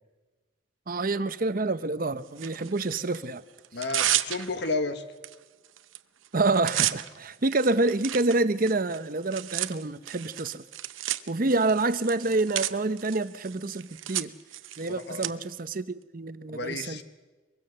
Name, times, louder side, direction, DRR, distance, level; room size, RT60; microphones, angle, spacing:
voice 1, 0.9-3.4 6.3-10.6 11.3-14.3 14.7-17.0, right 2 dB, 45° right, 14 dB, 0.8 m, -27 dB
Tearing, 2.4-3.2 3.6-4.7 5.2-5.4 5.6-6.0 6.2-15.3, right 13 dB, 85° right, 0.9 m, -33 dB
voice 2, 3.7-5.0 15.1-15.3 16.5-17.0, left 3 dB, 60° left, 9 dB, 1.6 m, -31 dB
23.5 x 23.0 x 6.7 m, 1.3 s
head